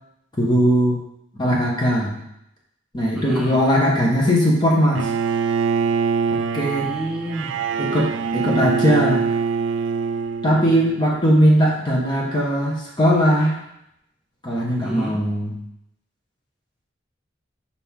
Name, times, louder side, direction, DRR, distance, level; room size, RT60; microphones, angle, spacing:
voice 1, 0.4-1.0 1.4-2.1 2.9-5.1 6.3-6.9 7.8-9.2 10.4-13.6 14.4-15.5, equal, 25° left, -4 dB, 1.3 m, -19 dB
voice 2, 3.1-3.6 6.8-7.5 14.8-15.2, right 1 dB, 5° right, -6 dB, 1.1 m, -29 dB
Bowed string instrument, 5.0-11.1, right 6 dB, 85° right, 0.3 m, -24 dB
6.8 x 4.2 x 3.7 m, 0.79 s
head